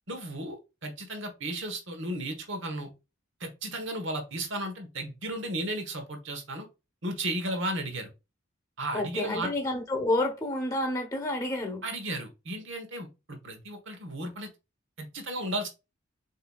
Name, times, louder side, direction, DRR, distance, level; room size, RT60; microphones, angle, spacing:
voice 1, 0.1-2.9 3.4-6.7 7.0-8.1 8.8-9.5 11.8-14.5 15.0-15.7, right 1 dB, 65° right, 1.2 m, -34 dB
voice 2, 8.9-11.8, left 1 dB, 15° left, 1.0 m, -29 dB
6.5 x 2.9 x 2.3 m
head